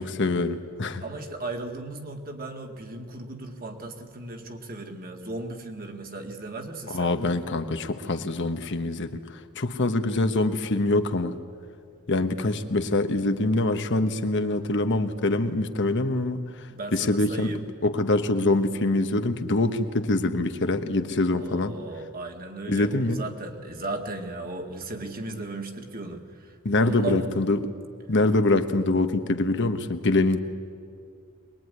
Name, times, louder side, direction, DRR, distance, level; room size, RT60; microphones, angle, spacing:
voice 1, 0.0-1.0 6.9-9.2 9.5-11.4 12.1-16.7 16.9-17.5 17.8-21.8 22.7-23.2 26.6-27.7 28.1-30.4, left 2 dB, 55° left, 8 dB, 1.2 m, -24 dB
voice 2, 1.0-7.1 16.7-17.6 21.4-26.6 26.8-27.4, right 2 dB, 40° right, 4 dB, 2.0 m, -36 dB
23.0 x 21.0 x 9.6 m, 2.2 s
head